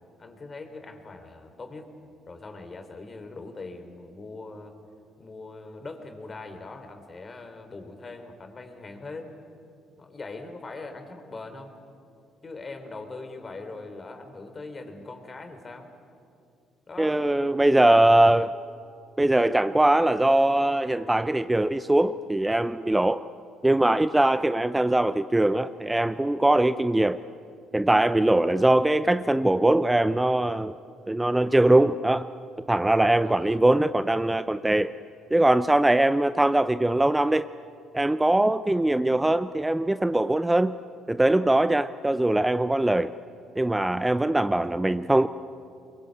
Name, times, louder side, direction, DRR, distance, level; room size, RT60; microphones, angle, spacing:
voice 1, 0.2-1.9 2.3-4.7 5.2-9.3 10.0-11.7 12.4-15.9 16.9-17.2 33.2-33.6 41.6-41.7, left 3 dB, 35° left, 7 dB, 3.7 m, -41 dB
voice 2, 17.0-18.5 19.2-23.2 23.6-27.2 27.7-30.7 31.1-32.3 32.7-34.9 35.3-37.5 37.9-40.7 41.1-43.1 43.6-45.3, right 1 dB, 15° right, 13 dB, 0.7 m, -21 dB
23.0 x 22.5 x 8.5 m, 2.5 s
hypercardioid pair, 50°, 0 cm